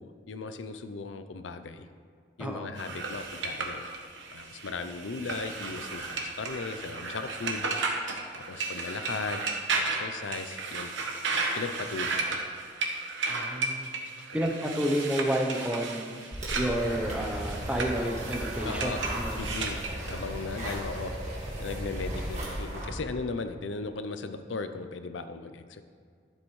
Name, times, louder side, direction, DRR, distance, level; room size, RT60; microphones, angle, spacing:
voice 1, 0.0-1.9 2.4-3.9 4.3-7.7 8.3-9.4 9.7-10.9 11.5-12.4 14.3-14.5 18.6-19.0 19.4-19.8 20.1-21.1 21.6-25.8, left 4 dB, 85° left, 10 dB, 0.5 m, -37 dB
sound 1, 2.8-20.2, right 3 dB, 85° right, 1.1 m, -34 dB
voice 2, 13.3-13.9 14.3-19.5, equal, 5° right, 2 dB, 0.7 m, -30 dB
sound 2, 16.3-22.9, right 1 dB, 40° right, 1.8 m, -35 dB
12.0 x 7.7 x 3.2 m, 2.1 s
head